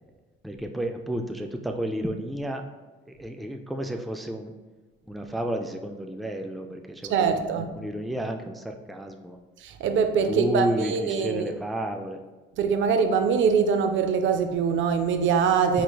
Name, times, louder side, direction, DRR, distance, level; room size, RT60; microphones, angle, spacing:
voice 1, 0.4-2.6 3.1-4.5 5.1-9.4 10.3-12.2 15.7-15.8, equal, ahead, 4 dB, 0.3 m, -31 dB
voice 2, 7.1-7.8 9.6-11.4 12.6-15.8, right 6 dB, 75° right, 7 dB, 0.4 m, -23 dB
4.5 x 3.2 x 2.2 m, 1.3 s
cardioid pair, 90°, 20 cm